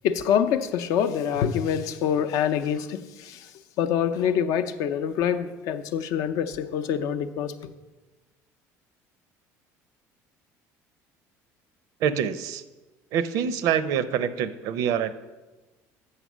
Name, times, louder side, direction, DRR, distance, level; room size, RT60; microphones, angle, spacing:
voice 1, 0.0-3.5 3.8-7.7, left 8 dB, 70° left, 9 dB, 0.5 m, -25 dB
voice 2, 12.0-12.6 13.1-15.1, right 8 dB, 70° right, 13 dB, 0.5 m, -25 dB
8.0 x 5.5 x 6.1 m, 1.2 s
cardioid pair, 135°, 6 cm